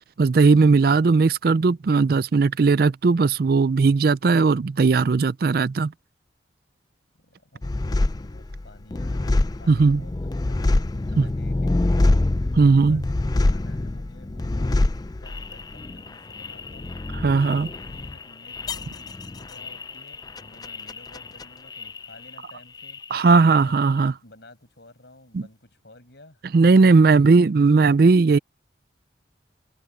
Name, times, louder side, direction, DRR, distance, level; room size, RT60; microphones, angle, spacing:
voice 1, 0.2-5.9 9.7-10.0 11.2-11.3 12.6-13.0 17.2-17.7 23.1-24.1 25.3-25.4 26.5-28.4, right 4 dB, 50° right, 0.4 m, -17 dB
voice 2, 7.1-17.0 17.7-23.8 24.2-26.4 27.1-27.5, left 1 dB, 65° left, 6.1 m, -51 dB
sound 1, 7.6-22.5 22.8-23.6, left 2 dB, 20° left, 0.4 m, -26 dB
head